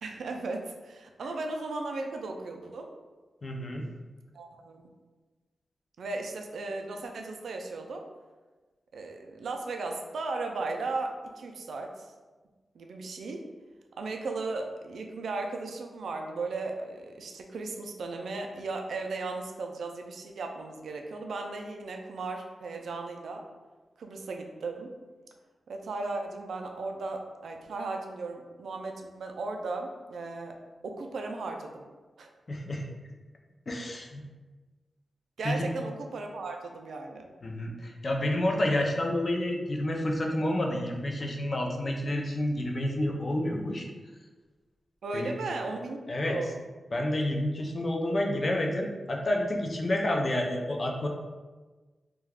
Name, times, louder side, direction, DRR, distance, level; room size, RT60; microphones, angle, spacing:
voice 1, 0.0-2.9 4.3-4.9 6.0-8.1 8.9-12.1 12.7-13.5 14.0-23.5 24.0-24.9 25.7-30.6 30.8-31.8 32.2-32.3 35.4-37.3 45.0-46.0 46.2-46.6, right 3 dB, 90° right, 3 dB, 0.3 m, -36 dB
voice 2, 3.4-3.8 32.5-32.8 33.7-34.2 35.4-35.7 37.4-43.9 45.1-45.4 46.1-46.4 46.9-51.1, left 1 dB, 45° left, 1 dB, 0.4 m, -29 dB
2.3 x 2.2 x 3.3 m, 1.3 s
cardioid pair, 75°, 0 cm